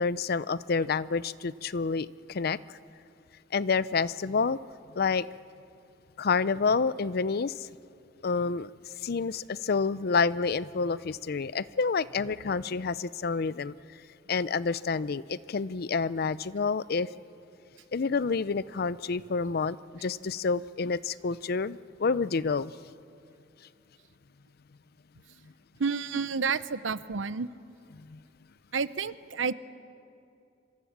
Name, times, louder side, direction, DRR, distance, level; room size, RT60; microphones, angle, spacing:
voice 1, 0.0-2.8 3.5-4.6 4.9-5.3 6.2-7.7 8.2-8.7 9.0-13.7 14.3-17.1 17.9-22.7 28.1-28.2, left 4 dB, 55° left, 18 dB, 0.5 m, -28 dB
voice 2, 25.8-27.5 28.7-29.5, right 5 dB, 85° right, 15 dB, 0.8 m, -30 dB
27.0 x 25.0 x 7.4 m, 2.6 s
head